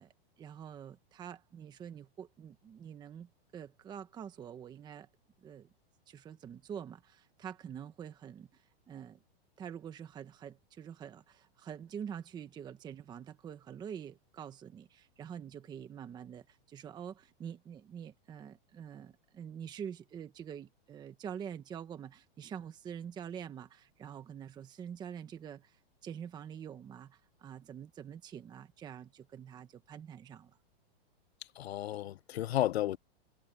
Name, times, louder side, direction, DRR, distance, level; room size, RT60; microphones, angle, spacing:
voice 1, 0.0-5.1 5.4-5.7 6.1-9.2 9.6-30.6, right 8 dB, 15° right, 1.1 m, -46 dB
voice 2, 31.6-33.0, left 13 dB, 80° left, 0.7 m, -32 dB
supercardioid pair, 160°, 31 cm